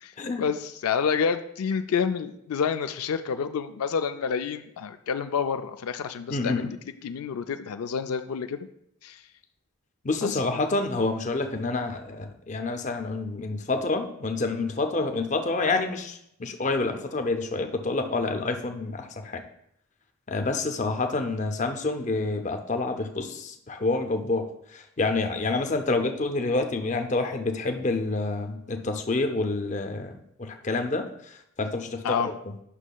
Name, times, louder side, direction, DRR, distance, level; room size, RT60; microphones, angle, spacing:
voice 1, 0.4-6.8 7.0-8.7 9.0-9.2 10.2-10.4 32.0-32.3, left 6 dB, 85° left, 8 dB, 0.4 m, -28 dB
voice 2, 6.3-6.7 10.0-19.4 20.3-30.1 30.4-32.3, left 3 dB, 35° left, 6 dB, 0.5 m, -28 dB
9.8 x 6.1 x 2.3 m, 0.75 s
head